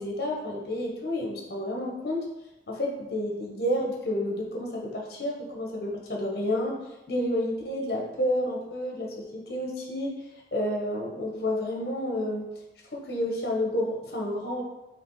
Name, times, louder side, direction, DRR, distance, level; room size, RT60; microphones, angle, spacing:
voice 1, 0.0-2.2 2.7-6.8 7.1-10.2 10.5-12.5 12.9-14.6, left 1 dB, 60° left, 0 dB, 0.9 m, -30 dB
5.0 x 2.8 x 3.1 m, 0.99 s
head